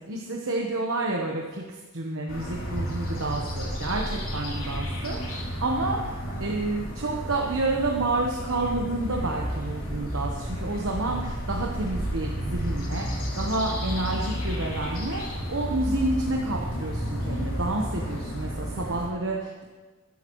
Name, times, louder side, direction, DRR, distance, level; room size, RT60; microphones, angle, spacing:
voice 1, 0.1-6.1 6.4-19.6, right 2 dB, 70° right, 0 dB, 1.1 m, -29 dB
sound 1, 2.3-19.1, equal, 75° left, 3.1 m, -32 dB
14.5 x 11.5 x 3.1 m, 1.3 s
head